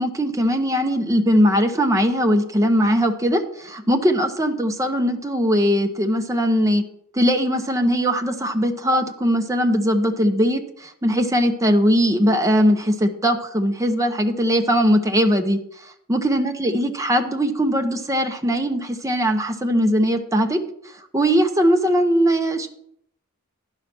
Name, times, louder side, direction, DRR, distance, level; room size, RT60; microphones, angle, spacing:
voice 1, 0.0-6.8 7.1-15.6 16.1-20.6 21.1-22.7, equal, 15° right, 5 dB, 0.8 m, -20 dB
11.0 x 5.7 x 5.9 m, 0.69 s
head